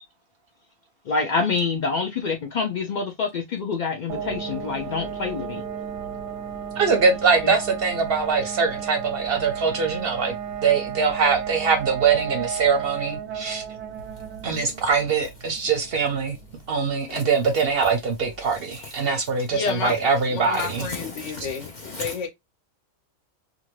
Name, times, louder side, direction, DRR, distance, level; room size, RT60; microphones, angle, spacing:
voice 1, 1.1-5.6 7.4-7.5 17.1-17.2 20.8-22.3, left 4 dB, 85° left, 0.4 m, -27 dB
sound 1, 4.1-18.7, right 8 dB, 90° right, 1.0 m, -34 dB
voice 2, 6.8-10.3 10.6-13.6 14.4-16.4 16.7-20.9, right 5 dB, 60° right, 0.7 m, -22 dB
voice 3, 19.5-20.0 20.3-22.3, left 5 dB, 70° left, 1.0 m, -30 dB
2.6 x 2.5 x 3.0 m
omnidirectional pair, 1.4 m